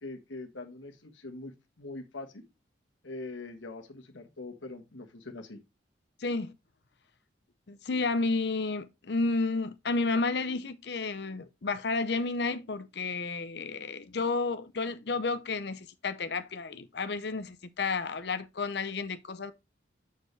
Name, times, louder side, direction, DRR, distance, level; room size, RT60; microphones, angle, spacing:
voice 1, 0.0-2.5 3.0-5.6, left 2 dB, 85° left, 1.4 m, -43 dB
voice 2, 6.2-6.5 7.7-19.5, left 3 dB, 60° left, 0.7 m, -31 dB
6.7 x 6.7 x 3.3 m
head